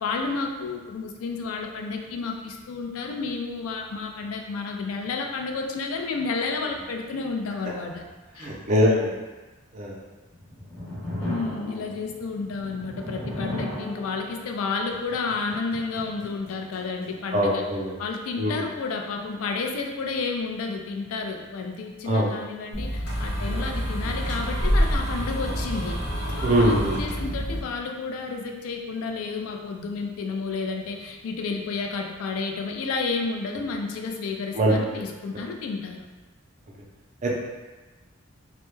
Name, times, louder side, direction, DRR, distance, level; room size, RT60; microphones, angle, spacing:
voice 1, 0.0-8.0 8.4-8.5 8.8-9.0 11.2-17.6 18.0-26.0 26.3-36.0, left 4 dB, 85° left, 2 dB, 0.3 m, -31 dB
voice 2, 8.4-9.1 9.7-10.0 17.3-18.0 18.4-18.6 22.0-22.3 26.4-27.0 34.5-35.0 37.2-37.4, equal, 35° right, -3 dB, 0.4 m, -22 dB
sound 1, 10.2-17.4, equal, 10° left, 0.7 m, -37 dB
sound 2, 22.7-27.6, equal, 55° left, 0.8 m, -27 dB
2.2 x 2.1 x 3.0 m, 1.2 s
head